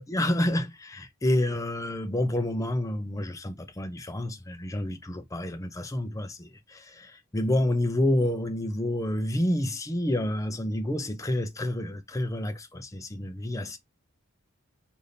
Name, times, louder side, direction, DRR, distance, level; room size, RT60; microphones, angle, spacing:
voice 1, 0.0-13.8, left 1 dB, 15° left, 0.5 m, -29 dB
3.4 x 2.6 x 2.6 m
head